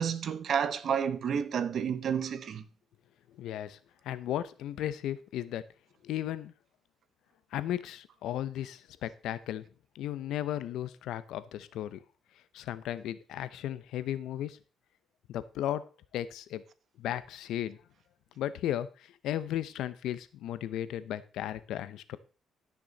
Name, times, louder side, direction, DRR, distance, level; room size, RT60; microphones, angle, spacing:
voice 1, 0.0-2.7, right 7 dB, 60° right, 1.0 m, -30 dB
voice 2, 3.4-3.8 4.0-5.6 6.0-6.5 7.5-9.6 9.9-12.0 12.5-14.6 15.3-15.8 16.1-16.6 17.0-17.8 18.4-18.9 19.2-22.2, left 12 dB, 85° left, 0.8 m, -35 dB
13.5 x 6.2 x 4.1 m
cardioid pair, 90°, 0 cm